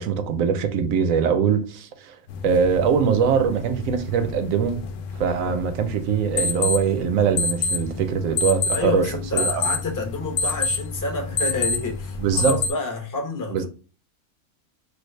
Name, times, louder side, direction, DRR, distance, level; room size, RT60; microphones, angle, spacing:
voice 1, 0.0-2.2 2.4-4.9 5.2-9.7 12.2-12.6 13.5-13.7, right 6 dB, 70° right, 0.9 m, -22 dB
sound 1, 2.3-12.7, left 4 dB, 65° left, 0.8 m, -28 dB
voice 2, 8.7-13.7, left 3 dB, 20° left, 0.6 m, -29 dB
3.3 x 2.3 x 3.2 m
omnidirectional pair, 1.6 m